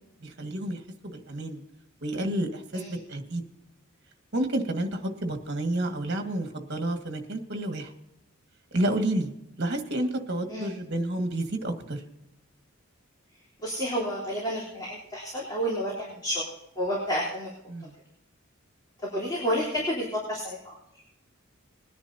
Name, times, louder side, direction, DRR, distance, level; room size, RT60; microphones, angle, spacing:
voice 1, 0.2-1.6 2.0-3.4 4.3-7.9 8.7-9.3 9.6-12.0 17.7-17.9, right 1 dB, 55° right, 5 dB, 1.8 m, -30 dB
voice 2, 13.6-16.4 16.8-17.5 19.0-20.7, equal, 20° left, -6 dB, 3.5 m, -30 dB
21.0 x 10.5 x 2.8 m, 0.85 s
head